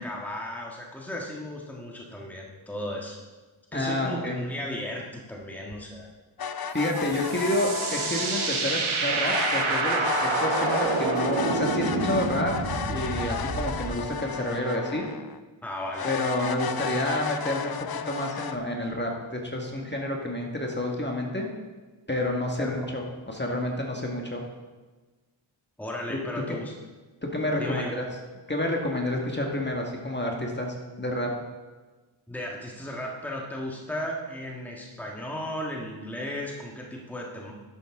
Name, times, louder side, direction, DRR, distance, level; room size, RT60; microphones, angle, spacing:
voice 1, 0.0-3.2 3.7-6.1 15.6-16.1 22.6-22.7 25.8-26.7 27.6-27.9 32.3-37.5, left 1 dB, 5° left, -1 dB, 1.5 m, -35 dB
voice 2, 3.7-4.5 6.7-12.5 12.9-15.1 16.0-21.5 22.1-24.4 26.1-26.2 26.5-26.6 27.2-28.1 28.5-31.3, left 1 dB, 20° left, 0 dB, 1.8 m, -29 dB
sound 1, 6.4-8.6 9.2-15.4 15.9-18.6, left 7 dB, 50° left, 0.6 m, -33 dB
sound 2, 6.8-14.0, right 3 dB, 85° right, 1.3 m, -28 dB
11.0 x 8.0 x 3.7 m, 1.3 s
cardioid pair, 50°, 48 cm